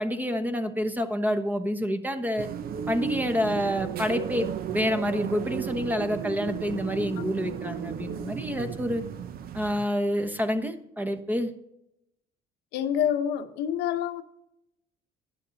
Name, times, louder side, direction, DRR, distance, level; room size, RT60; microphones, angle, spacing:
voice 1, 0.0-2.5 2.9-9.0 9.5-11.5, equal, 10° right, 1.1 m, -28 dB
sound 1, 2.4-9.9, right 8 dB, 60° right, 0.8 m, -34 dB
voice 2, 12.7-14.2, left 9 dB, 85° left, 0.9 m, -27 dB
12.5 x 9.8 x 4.0 m
cardioid pair, 110°, 17 cm